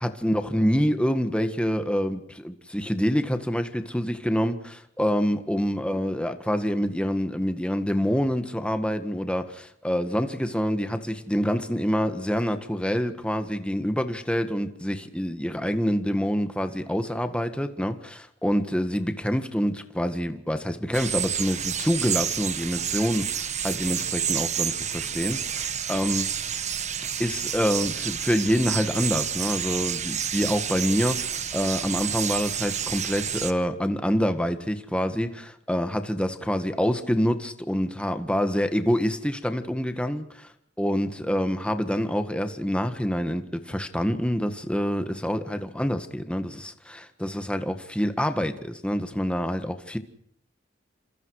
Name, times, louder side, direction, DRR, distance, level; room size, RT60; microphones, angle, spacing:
voice 1, 0.0-26.3 27.2-40.5 40.8-50.0, equal, 5° left, 1.7 m, -26 dB
sound 1, 20.9-33.5, right 8 dB, 40° right, 1.4 m, -29 dB
28.5 x 27.0 x 4.9 m
head